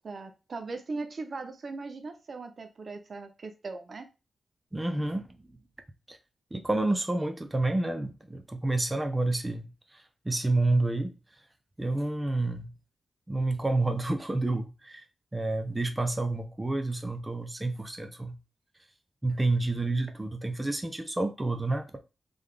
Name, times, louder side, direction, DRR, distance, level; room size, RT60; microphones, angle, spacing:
voice 1, 0.0-4.1, right 3 dB, 55° right, 0.6 m, -39 dB
voice 2, 4.7-5.6 6.1-6.2 6.5-11.1 11.8-12.7 13.3-15.0 15.3-18.4 19.2-22.0, right 2 dB, 15° right, 0.6 m, -29 dB
3.7 x 3.5 x 3.3 m
wide cardioid pair, 95°, 0 cm